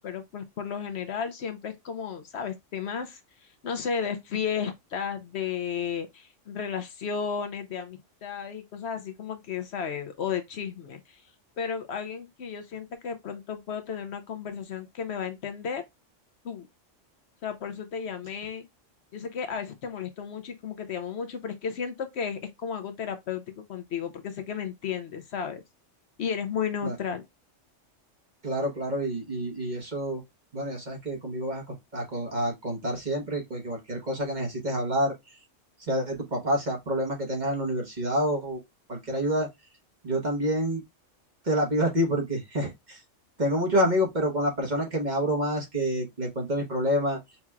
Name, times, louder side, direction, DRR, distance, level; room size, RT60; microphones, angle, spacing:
voice 1, 0.0-11.2 11.6-15.8 16.4-16.7 17.4-18.7 19.1-25.6 26.2-27.2, left 7 dB, 65° left, 0.9 m, -33 dB
voice 2, 28.4-30.2 30.5-35.1 35.9-38.6 38.9-39.5 40.0-40.8 41.4-43.0 43.4-47.2, equal, 40° right, 1.2 m, -28 dB
5.6 x 3.0 x 2.3 m
omnidirectional pair, 1.3 m